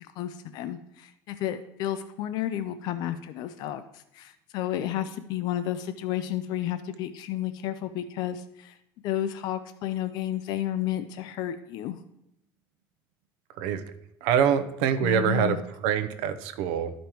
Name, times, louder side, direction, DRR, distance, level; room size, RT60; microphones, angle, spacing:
voice 1, 0.2-8.8 9.0-12.0 15.0-15.6, left 11 dB, 60° left, 11 dB, 0.4 m, -32 dB
voice 2, 14.2-15.6 15.8-16.9, right 8 dB, 75° right, 10 dB, 0.7 m, -24 dB
12.5 x 5.1 x 3.0 m, 0.80 s
cardioid pair, 155°, 8 cm